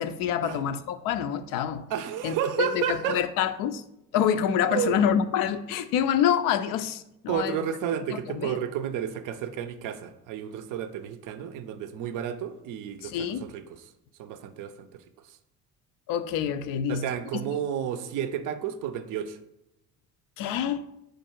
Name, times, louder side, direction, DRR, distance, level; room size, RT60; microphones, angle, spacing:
voice 1, 0.0-1.8 2.2-3.8 4.1-7.6 8.1-8.6 13.0-13.4 16.1-17.0 20.4-20.8, left 9 dB, 50° left, 0.4 m, -27 dB
voice 2, 1.9-3.2 4.7-5.0 7.3-13.9 14.2-15.4 16.9-19.4, right 9 dB, 45° right, 0.6 m, -31 dB
4.6 x 2.5 x 4.4 m
hypercardioid pair, 60°, 44 cm